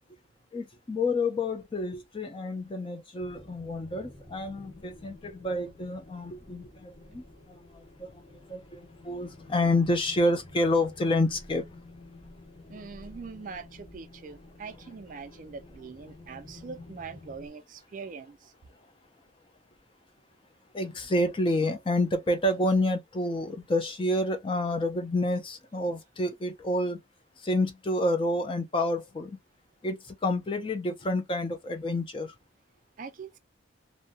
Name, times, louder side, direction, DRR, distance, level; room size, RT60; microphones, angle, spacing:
voice 1, 0.5-11.6 20.7-27.0 27.4-29.4 29.8-32.3, left 1 dB, 25° left, 0.4 m, -29 dB
sound 1, 3.2-17.5, left 2 dB, 40° left, 1.4 m, -50 dB
voice 2, 12.7-18.5 33.0-33.4, right 5 dB, 40° right, 0.3 m, -43 dB
2.6 x 2.1 x 2.6 m
head